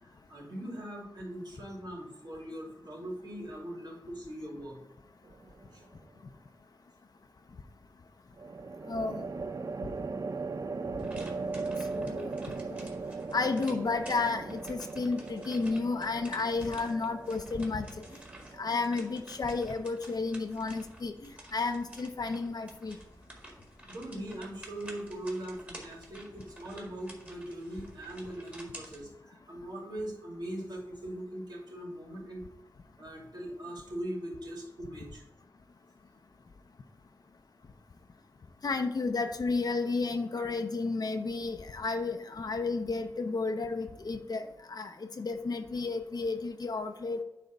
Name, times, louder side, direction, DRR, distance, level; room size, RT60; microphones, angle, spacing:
voice 1, 0.0-4.8 5.7-5.9 23.9-32.4 33.0-35.2, right 1 dB, 90° right, -3 dB, 2.6 m, -41 dB
sound 1, 5.3-5.8 8.4-19.7, right 4 dB, 55° right, 0.4 m, -39 dB
voice 2, 8.9-9.2 11.9-12.3 13.3-17.9 18.6-21.1 21.5-23.0 38.6-47.2, left 3 dB, 70° left, 5 dB, 0.6 m, -32 dB
sound 2, 11.0-29.0, right 1 dB, 20° right, 1.8 m, -51 dB
9.1 x 3.5 x 5.3 m, 0.89 s
wide cardioid pair, 80°, 7 cm